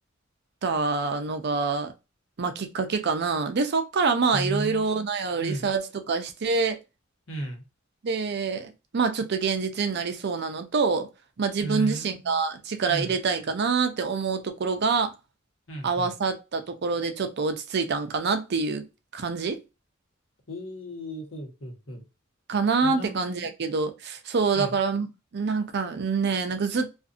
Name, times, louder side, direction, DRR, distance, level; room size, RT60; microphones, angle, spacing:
voice 1, 0.6-1.9 2.4-6.8 8.0-11.1 11.4-15.1 15.8-18.8 19.1-19.6 22.5-25.1 25.3-27.1, right 4 dB, 55° right, 0.5 m, -26 dB
voice 2, 4.3-5.0 5.4-5.7 7.3-7.6 11.6-12.4 12.9-13.2 15.7-16.1 20.5-22.0 22.8-23.5 24.5-24.8, right 1 dB, 75° left, 1.1 m, -35 dB
2.6 x 2.5 x 2.4 m
head